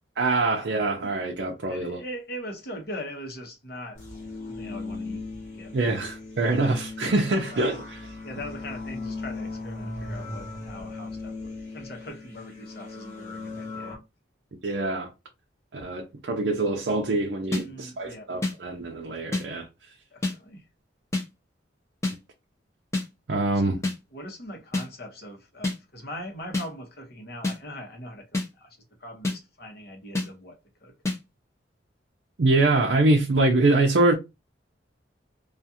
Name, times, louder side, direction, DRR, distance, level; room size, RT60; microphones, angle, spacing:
voice 1, 0.2-2.0 5.7-8.2 14.6-15.1 15.7-19.9 23.3-23.8 32.4-34.1, right 2 dB, 60° right, 0.5 m, -24 dB
voice 2, 1.7-4.0 4.4-5.8 7.5-7.7 8.2-14.0 17.6-18.3 20.1-20.7 23.5-23.8 24.1-30.9, equal, 55° left, 0.9 m, -41 dB
sound 1, 3.9-14.0, left 3 dB, 40° left, 1.2 m, -37 dB
sound 2, 17.5-17.6 18.4-18.5 19.3-19.4 20.2-20.4 21.1-21.3 22.0-22.2 22.9-23.1 23.8-24.0 24.7-24.9 25.6-25.8 26.5-26.7 27.4-27.6 28.3-28.5 29.2-29.4 30.2-30.3 31.1-31.2, left 2 dB, 15° left, 0.5 m, -26 dB
2.4 x 2.4 x 2.7 m
head